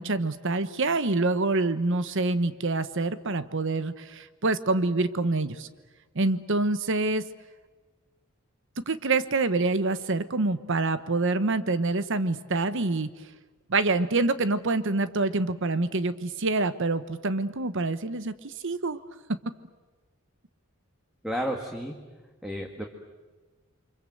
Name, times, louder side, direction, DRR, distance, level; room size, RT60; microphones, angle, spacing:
voice 1, 0.0-5.7 6.1-7.2 8.9-13.1 13.7-19.0, right 3 dB, 65° right, 13 dB, 1.1 m, -26 dB
voice 2, 21.2-22.0 22.4-22.8, equal, ahead, 2 dB, 2.0 m, -31 dB
30.0 x 25.0 x 7.9 m, 1.2 s
head